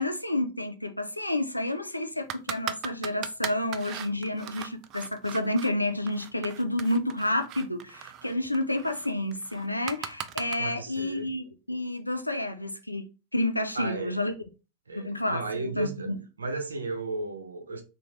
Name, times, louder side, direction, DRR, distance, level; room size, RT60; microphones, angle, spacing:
voice 1, 0.0-13.0 13.3-14.3 15.0-15.4 15.8-16.2, left 1 dB, 85° left, 0.4 m, -30 dB
sound 1, 2.3-5.7 6.1-10.6, right 10 dB, 35° right, 0.3 m, -38 dB
voice 2, 10.6-11.3 13.7-14.2 14.9-16.1 16.4-17.8, right 3 dB, 75° right, 0.6 m, -34 dB
3.7 x 2.5 x 3.0 m
figure-of-eight pair, 90°, 0 cm